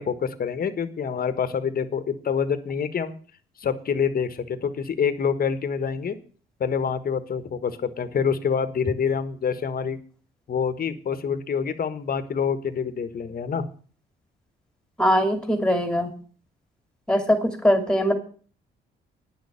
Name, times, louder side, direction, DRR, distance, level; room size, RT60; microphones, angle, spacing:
voice 1, 0.0-3.2 3.6-6.2 6.6-10.0 10.5-13.7, left 6 dB, 45° left, 11 dB, 1.4 m, -26 dB
voice 2, 15.0-16.1 17.1-18.1, equal, 5° left, 6 dB, 2.7 m, -21 dB
10.0 x 6.5 x 8.6 m, 0.42 s
cardioid pair, 90°, 20 cm